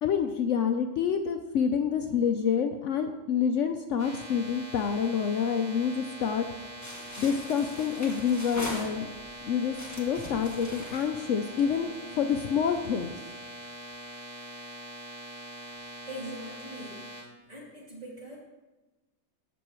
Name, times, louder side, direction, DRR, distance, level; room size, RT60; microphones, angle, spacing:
voice 1, 0.0-6.5 7.2-9.1 9.4-13.2, left 7 dB, 70° left, 6 dB, 0.9 m, -27 dB
sound 1, 4.0-17.2, right 1 dB, 80° right, 2.6 m, -43 dB
sound 2, 6.8-9.3 9.7-11.9, left 1 dB, 10° left, 1.5 m, -41 dB
voice 2, 16.1-17.0 17.5-18.4, equal, 30° right, -6 dB, 3.2 m, -41 dB
15.0 x 6.3 x 3.1 m, 1.1 s
omnidirectional pair, 1.4 m